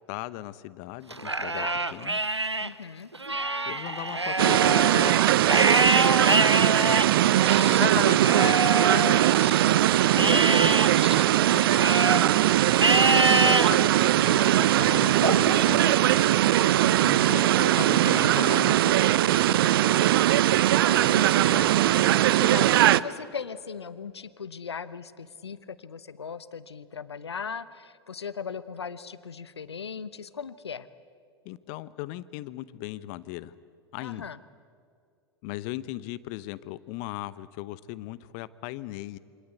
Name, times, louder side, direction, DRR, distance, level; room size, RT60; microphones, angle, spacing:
voice 1, 0.0-2.2 3.7-5.2 6.0-6.5 7.8-9.2 10.1-10.8 12.9-15.8 17.0-19.0 19.5-19.9 21.2-21.6 22.7-23.1 31.4-33.5 33.9-34.3 35.4-39.2, left 16 dB, 45° left, 17 dB, 1.0 m, -37 dB
Livestock farm animals working animals, 1.1-2.7 3.1-9.7 10.2-12.3 12.8-13.7 14.2-14.7 15.2-16.3, right 2 dB, 90° right, 0.8 m, -26 dB
voice 2, 2.6-3.1 7.4-7.8 11.5-11.9 16.8-17.4 20.8-30.9 34.0-34.4, left 6 dB, 75° left, 16 dB, 1.1 m, -39 dB
sound 1, 4.4-23.0, right 13 dB, 60° right, 0.6 m, -21 dB
28.0 x 25.0 x 8.1 m, 2.3 s
figure-of-eight pair, 90°, 14 cm